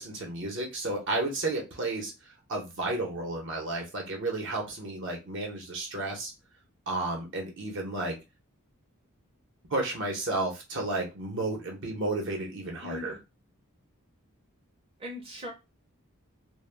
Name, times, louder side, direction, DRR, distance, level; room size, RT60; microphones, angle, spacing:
voice 1, 0.0-2.1 2.5-6.3 6.9-8.2 9.7-13.1, right 2 dB, 60° right, 0 dB, 0.9 m, -32 dB
voice 2, 12.8-13.2 15.0-15.5, left 2 dB, 25° right, -1 dB, 0.6 m, -39 dB
2.2 x 2.2 x 3.3 m, 0.26 s
head